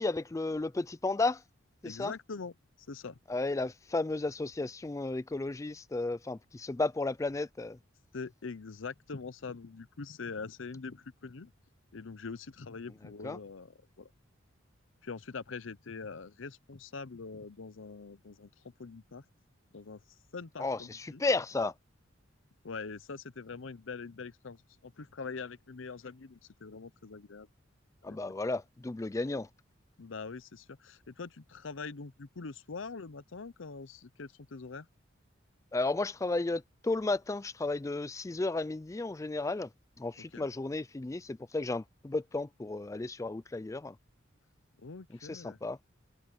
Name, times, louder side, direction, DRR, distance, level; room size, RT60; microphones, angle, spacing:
voice 1, 0.0-1.4 1.8-2.1 3.3-7.8 13.2-13.4 20.6-21.7 28.0-29.5 35.7-39.7 40.0-43.9 45.3-45.8, left 2 dB, 15° left, 0.3 m, -33 dB
voice 2, 1.8-3.2 8.1-11.5 11.9-14.1 15.0-18.5 18.8-19.2 19.7-20.0 20.3-21.2 22.6-27.5 28.1-28.2 30.0-34.9 40.2-40.5 44.8-45.6, left 4 dB, 75° left, 0.7 m, -43 dB
head